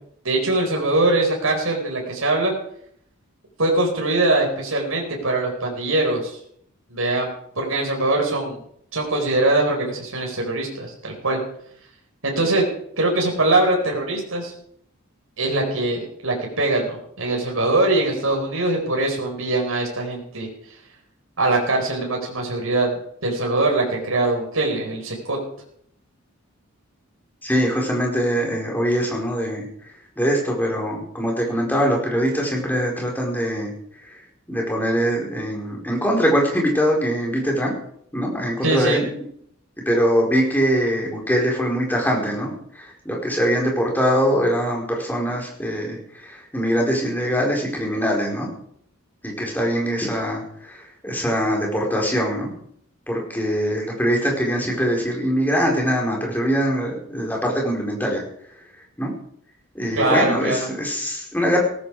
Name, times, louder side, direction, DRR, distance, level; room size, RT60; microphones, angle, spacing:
voice 1, 0.2-2.5 3.6-6.4 6.9-7.3 7.6-8.6 8.9-11.4 12.2-12.6 13.0-14.5 15.4-20.5 21.4-25.4 38.6-39.0 59.9-60.7, right 2 dB, 80° right, 0 dB, 4.5 m, -22 dB
voice 2, 27.4-29.6 30.2-33.7 34.5-37.7 38.1-39.1 39.9-42.6 43.0-46.0 46.5-48.5 49.2-50.4 51.0-52.5 53.1-58.2 59.0-59.1 59.7-61.6, equal, 10° left, -1 dB, 4.7 m, -22 dB
17.5 x 14.0 x 5.0 m, 0.68 s
head